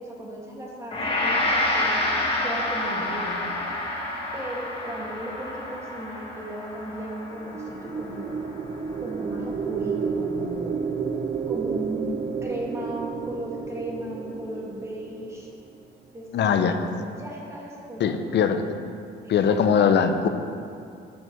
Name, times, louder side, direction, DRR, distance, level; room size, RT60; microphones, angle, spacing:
voice 1, 0.0-2.0 2.4-3.5 4.3-8.4 9.0-10.8 11.5-12.2 12.4-15.5 16.1-16.3 16.6-18.2 19.2-19.8, right 1 dB, 15° right, -3 dB, 2.0 m, -36 dB
Gong, 0.9-10.1, left 1 dB, 30° left, 1.7 m, -29 dB
sound 1, 7.3-15.8, right 6 dB, 30° right, 0.4 m, -31 dB
voice 2, 16.3-16.8 18.0-18.6 19.3-20.3, left 7 dB, 60° left, 8 dB, 0.7 m, -21 dB
8.6 x 4.6 x 6.7 m, 2.4 s
cardioid pair, 90°, 20 cm